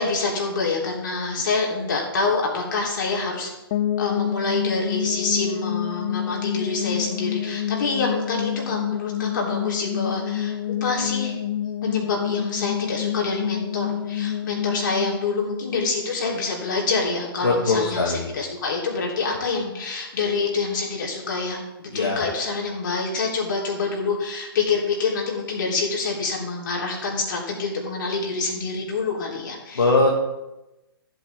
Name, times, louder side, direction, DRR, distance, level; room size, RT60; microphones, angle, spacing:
voice 1, 0.0-3.5 4.0-11.4 11.8-29.8, left 4 dB, 55° left, -2 dB, 3.5 m, -26 dB
sound 1, 3.7-16.6, left 10 dB, 30° left, 0.4 m, -28 dB
voice 2, 17.4-18.3 21.9-22.2 29.8-30.2, left 2 dB, 70° left, -2 dB, 1.9 m, -21 dB
14.5 x 8.2 x 3.6 m, 0.99 s
figure-of-eight pair, 125°, 13 cm